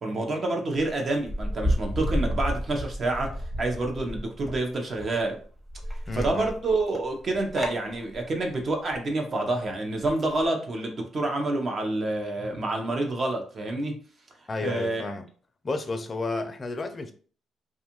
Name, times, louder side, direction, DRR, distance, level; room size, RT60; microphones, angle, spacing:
voice 1, 0.0-5.4 6.1-14.0 14.6-15.1, right 2 dB, 45° right, 0.7 m, -28 dB
sound 1, 0.8-4.6 4.9-9.0 10.0-10.5, equal, 5° right, 0.8 m, -31 dB
voice 2, 6.1-6.5 14.5-15.2 15.6-17.1, left 2 dB, 30° left, 0.4 m, -32 dB
2.6 x 2.3 x 2.9 m
cardioid pair, 90°, 0 cm